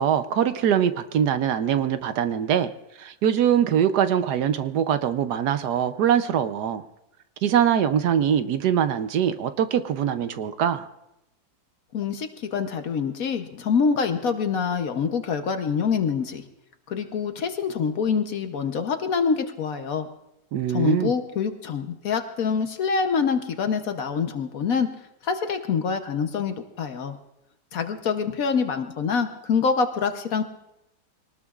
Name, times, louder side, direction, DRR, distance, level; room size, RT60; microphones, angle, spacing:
voice 1, 0.0-2.7 3.0-6.8 7.4-10.9 20.5-21.1, right 9 dB, 70° right, 10 dB, 1.2 m, -23 dB
voice 2, 11.9-16.4 16.9-20.1 20.7-24.9 25.2-27.1 27.7-30.4, left 6 dB, 60° left, 7 dB, 1.2 m, -25 dB
25.0 x 19.0 x 2.4 m, 0.88 s
omnidirectional pair, 1.9 m